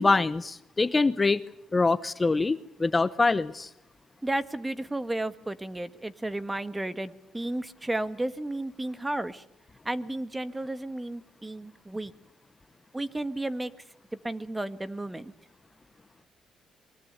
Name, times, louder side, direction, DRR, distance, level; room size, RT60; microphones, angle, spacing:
voice 1, 0.0-1.4 1.7-3.7, left 3 dB, 25° left, 14 dB, 0.9 m, -24 dB
voice 2, 4.2-9.4 9.8-12.1 12.9-13.7 14.2-15.3, right 1 dB, 15° right, 13 dB, 1.5 m, -33 dB
24.5 x 22.5 x 8.1 m, 0.79 s
cardioid pair, 90°, 0 cm